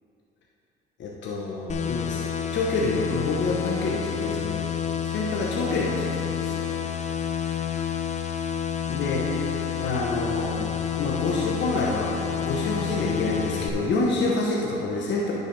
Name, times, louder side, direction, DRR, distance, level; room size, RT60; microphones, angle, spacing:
voice 1, 1.0-2.3 2.5-4.7 5.0-6.7 8.9-10.7 11.0-15.3, left 2 dB, 65° left, -4 dB, 1.1 m, -28 dB
sound 1, 1.7-13.7, left 8 dB, 35° left, 0.6 m, -29 dB
10.5 x 6.5 x 3.4 m, 2.9 s
cardioid pair, 90°, 20 cm